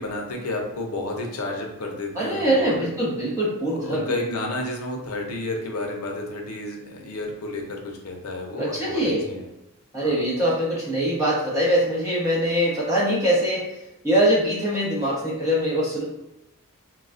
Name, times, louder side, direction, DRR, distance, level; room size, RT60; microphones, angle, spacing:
voice 1, 0.0-2.9 3.7-9.0 9.3-9.5 10.0-10.2, left 2 dB, 90° left, 1 dB, 0.6 m, -31 dB
voice 2, 2.1-4.1 8.6-9.3 9.9-13.8 14.0-16.0, equal, 15° right, -8 dB, 1.0 m, -23 dB
3.9 x 2.3 x 2.4 m, 0.91 s
head